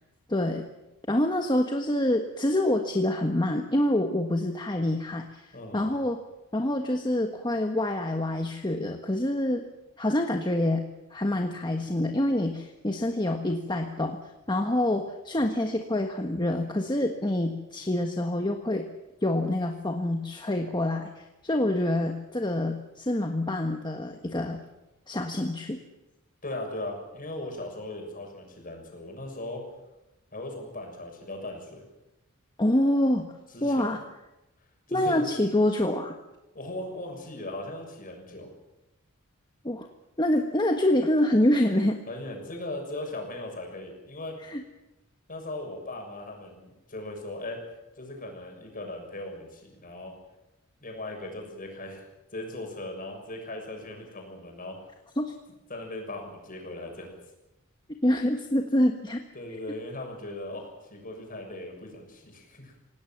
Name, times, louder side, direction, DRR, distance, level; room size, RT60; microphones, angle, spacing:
voice 1, 0.3-0.6 1.1-6.2 6.5-9.6 10.0-10.8 11.1-14.2 14.5-18.9 19.2-24.6 25.1-25.8 32.6-33.3 33.6-34.0 34.9-36.2 39.6-39.9 40.2-42.0 44.4-44.6 55.2-55.3 58.0-59.2, left 1 dB, 20° left, 4 dB, 1.4 m, -26 dB
voice 2, 5.5-6.0 26.4-29.6 30.3-31.8 33.5-33.9 34.9-35.3 36.5-38.5 42.1-44.4 45.3-47.6 48.0-50.1 50.8-52.1 52.3-54.9 55.7-57.2 59.3-62.7, left 1 dB, 40° left, 2 dB, 6.8 m, -38 dB
27.5 x 18.0 x 7.5 m, 0.97 s
head